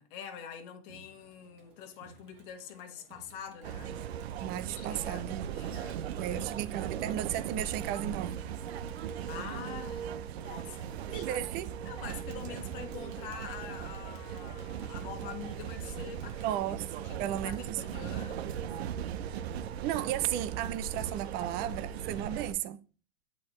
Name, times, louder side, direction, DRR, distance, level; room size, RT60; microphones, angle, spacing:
voice 1, 0.0-4.0 4.7-6.5 9.3-11.5 11.8-16.6 17.0-18.5, left 8 dB, 55° left, 1.5 m, -46 dB
Crowd, 0.9-16.9, right 4 dB, 60° right, 1.6 m, -58 dB
sound 1, 3.6-22.5, right 9 dB, 85° right, 0.6 m, -38 dB
voice 2, 4.4-5.6 6.2-8.5 11.1-11.7 16.4-17.8 19.8-22.8, right 12 dB, 30° right, 0.4 m, -34 dB
8.5 x 4.2 x 3.1 m
hypercardioid pair, 125°, 31 cm